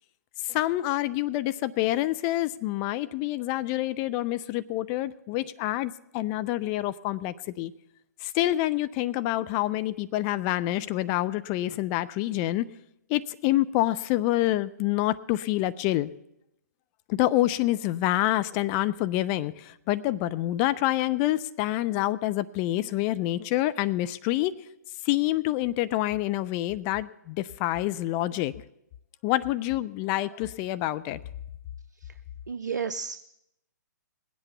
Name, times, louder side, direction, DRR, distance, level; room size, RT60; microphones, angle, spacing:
voice 1, 0.4-7.7 8.2-12.7 13.1-16.1 17.1-24.5 25.0-28.5 29.2-31.2, left 15 dB, 25° left, 14 dB, 0.4 m, -27 dB
voice 2, 32.5-33.2, right 6 dB, 75° right, 11 dB, 0.6 m, -31 dB
20.0 x 8.4 x 6.8 m, 0.82 s
figure-of-eight pair, 125°, 10 cm